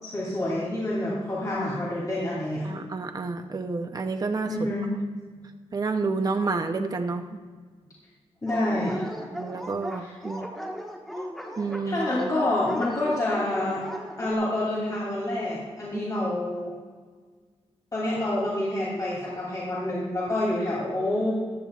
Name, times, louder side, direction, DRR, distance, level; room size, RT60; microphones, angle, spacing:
voice 1, 0.0-2.7 4.5-4.9 8.4-9.0 9.9-10.1 11.8-13.8 14.2-16.7 17.9-21.3, left 1 dB, 35° left, -6 dB, 2.8 m, -28 dB
voice 2, 2.6-4.5 5.7-7.4 9.3-10.5 11.6-12.1, right 4 dB, 35° right, 5 dB, 0.6 m, -29 dB
Dog, 8.5-14.3, equal, ahead, 1.4 m, -36 dB
15.5 x 11.5 x 2.4 m, 1.5 s
wide cardioid pair, 115°, 11 cm